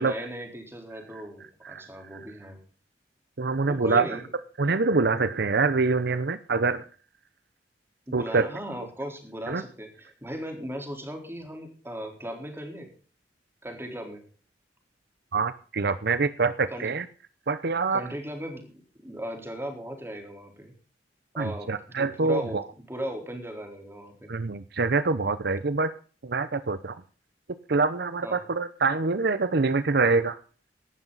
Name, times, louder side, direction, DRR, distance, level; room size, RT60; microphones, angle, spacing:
voice 1, 0.0-2.6 3.7-4.2 8.1-12.9 13.6-14.2 16.7-16.9 17.9-18.7 19.0-20.7 21.3-24.3 28.2-28.4, equal, 15° right, 4 dB, 3.9 m, -37 dB
voice 2, 3.4-4.1 4.6-6.8 8.1-8.5 9.5-9.6 15.3-17.0 17.5-18.0 21.4-22.6 24.3-25.9 26.2-27.0 27.7-30.4, right 4 dB, 60° right, 14 dB, 0.8 m, -25 dB
16.5 x 12.0 x 4.0 m, 0.40 s
head